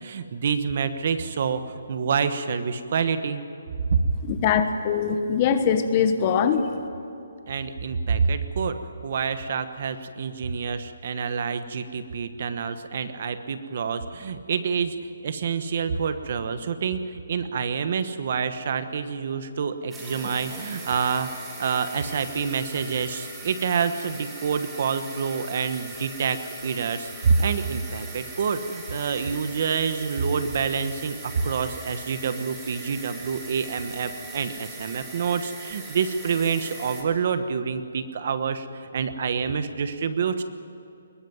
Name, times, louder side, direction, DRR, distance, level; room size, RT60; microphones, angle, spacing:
voice 1, 0.0-3.4 3.9-4.1 7.5-8.8 9.0-21.3 21.6-40.4, right 6 dB, 45° right, 10 dB, 1.2 m, -27 dB
voice 2, 4.3-6.7, left 7 dB, 25° left, 9 dB, 1.1 m, -22 dB
sound 1, 19.9-37.0, right 3 dB, 10° right, 2.8 m, -40 dB
21.5 x 19.0 x 9.4 m, 2.7 s
hypercardioid pair, 170°, 0 cm